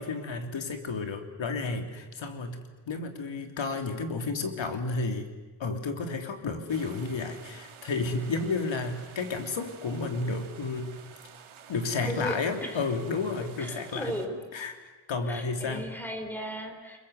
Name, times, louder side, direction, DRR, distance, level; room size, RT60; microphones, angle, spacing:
voice 1, 0.0-5.3 5.6-10.9 11.7-14.1 14.5-14.8 15.1-15.9, left 3 dB, 65° left, 5 dB, 3.2 m, -32 dB
sound 1, 6.7-14.3, right 8 dB, 80° right, 2.3 m, -51 dB
voice 2, 12.0-12.8 13.6-14.3 15.3-17.0, equal, 5° left, 4 dB, 4.2 m, -36 dB
29.5 x 21.0 x 8.0 m, 1.2 s
wide cardioid pair, 150°, 48 cm